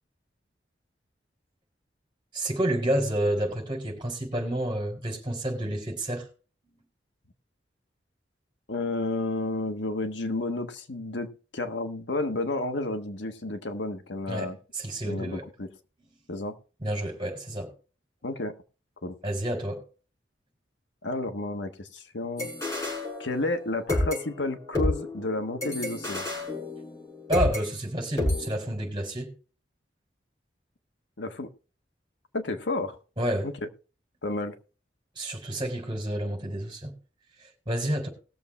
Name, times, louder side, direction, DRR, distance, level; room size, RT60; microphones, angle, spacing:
voice 1, 2.3-6.2 6.7-6.8 14.3-15.4 16.8-17.7 19.2-19.8 27.3-29.3 33.2-33.5 35.2-36.9 37.4-38.1, right 1 dB, 25° right, 4.0 m, -29 dB
voice 2, 8.7-14.6 15.0-15.7 16.3-16.5 18.2-18.5 19.0-19.2 21.0-22.8 23.2-26.2 31.2-31.5 32.3-33.0 33.4-33.5 34.2-34.5, left 2 dB, 80° left, 1.3 m, -31 dB
sound 1, 22.4-23.6 23.9-27.6 28.2-28.5, left 1 dB, 20° left, 6.1 m, -29 dB
19.5 x 7.2 x 3.2 m
head